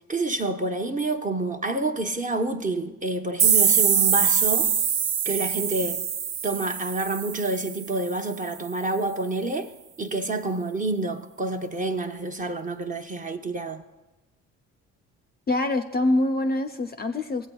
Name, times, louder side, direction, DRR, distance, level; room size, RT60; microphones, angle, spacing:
voice 1, 0.1-4.7 5.2-6.0 6.4-9.7 10.0-13.8, right 2 dB, 20° right, 0.8 m, -28 dB
sound 1, 3.4-8.1, right 7 dB, 55° right, 0.7 m, -23 dB
voice 2, 15.5-17.5, left 2 dB, 25° left, 0.5 m, -24 dB
16.0 x 8.1 x 2.3 m
hypercardioid pair, 50°, 39 cm